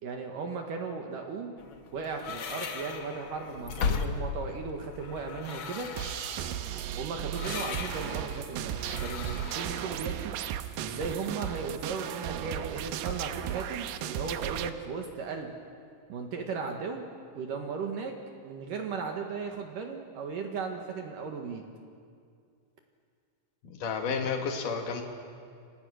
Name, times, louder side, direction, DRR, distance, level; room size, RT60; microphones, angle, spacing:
voice 1, 0.0-1.5 1.9-5.9 6.9-10.3 10.8-15.5 16.1-17.1 17.3-18.1 18.4-21.6, right 5 dB, 60° right, 3 dB, 3.0 m, -36 dB
sound 1, 1.6-9.9, left 5 dB, 90° left, 1.1 m, -37 dB
sound 2, 6.0-14.7, right 11 dB, 90° right, 2.9 m, -35 dB
voice 2, 23.6-25.0, left 5 dB, 55° left, 3 dB, 3.5 m, -31 dB
29.0 x 25.0 x 6.4 m, 2.3 s
omnidirectional pair, 4.6 m